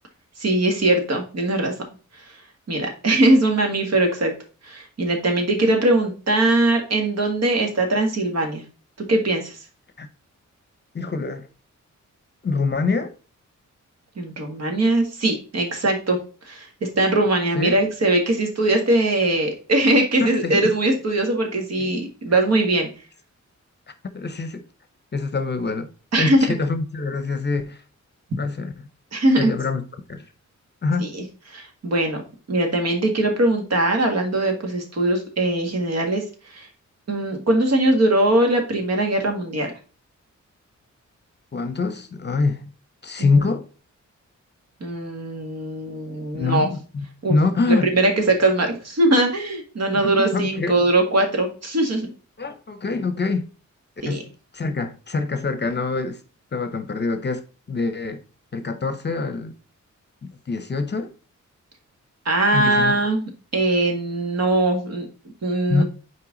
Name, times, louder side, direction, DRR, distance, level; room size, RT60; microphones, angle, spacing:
voice 1, 0.4-1.7 2.7-4.3 4.6-8.6 9.1-9.6 14.2-16.2 16.4-22.9 26.1-26.4 29.1-29.5 31.0-31.2 31.5-32.2 32.5-36.2 36.5-36.7 37.1-39.7 43.2-43.3 44.8-46.7 47.2-47.4 47.7-52.1 54.0-54.2 62.3-65.1 65.4-65.8, right 2 dB, 60° right, 1.8 m, -21 dB
voice 2, 10.9-11.5 12.4-13.1 17.5-17.8 20.2-20.7 21.8-21.9 24.1-24.6 25.1-25.9 26.2-27.8 28.4-28.7 29.4-29.8 30.1-30.3 30.8-31.1 41.5-42.6 43.0-43.7 46.3-47.9 49.9-50.8 52.4-53.5 54.1-54.2 54.5-56.2 56.5-58.2 58.5-59.5 60.2-61.1 62.5-62.9 65.7-65.8, left 3 dB, 35° left, 0.7 m, -25 dB
5.9 x 4.6 x 3.9 m
wide cardioid pair, 140°, 30 cm